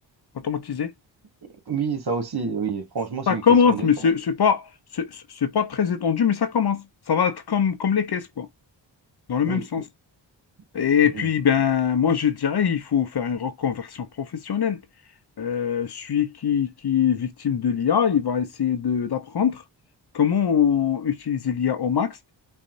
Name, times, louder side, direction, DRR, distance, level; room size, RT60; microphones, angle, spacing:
voice 1, 0.4-0.9 3.3-4.7 4.9-8.5 9.3-9.8 10.7-14.8 15.4-19.6 20.1-22.2, left 7 dB, 55° left, 0.9 m, -23 dB
voice 2, 1.7-4.1 9.5-9.7 11.1-11.3, right 5 dB, 55° right, 2.0 m, -29 dB
5.4 x 2.6 x 2.6 m
cardioid pair, 50°, 47 cm